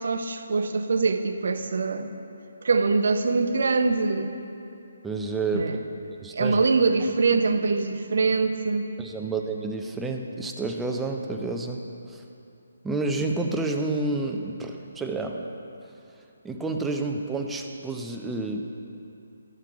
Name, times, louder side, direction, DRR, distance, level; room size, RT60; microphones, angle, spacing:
voice 1, 0.0-2.1 2.6-4.3 5.5-5.8 6.3-8.9, right 4 dB, 60° right, 8 dB, 0.6 m, -23 dB
voice 2, 5.0-5.8 6.2-6.6 9.0-11.8 12.1-12.2 12.8-15.4 16.4-18.7, right 3 dB, 5° right, 3 dB, 0.5 m, -29 dB
12.0 x 5.8 x 4.8 m, 2.7 s
figure-of-eight pair, 145°, 0 cm